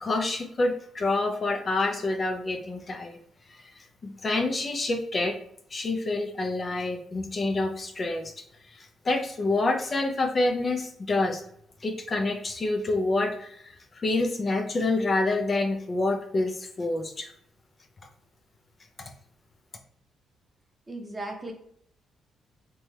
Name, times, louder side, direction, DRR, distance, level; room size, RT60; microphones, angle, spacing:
voice 1, 0.0-3.2 3.5-5.4 5.7-8.3 8.7-11.4 11.8-17.3, left 2 dB, 35° left, 4 dB, 0.4 m, -27 dB
voice 2, 20.9-21.5, right 2 dB, 20° right, 2 dB, 0.6 m, -36 dB
2.8 x 2.2 x 3.1 m, 0.71 s
cardioid pair, 90°, 0 cm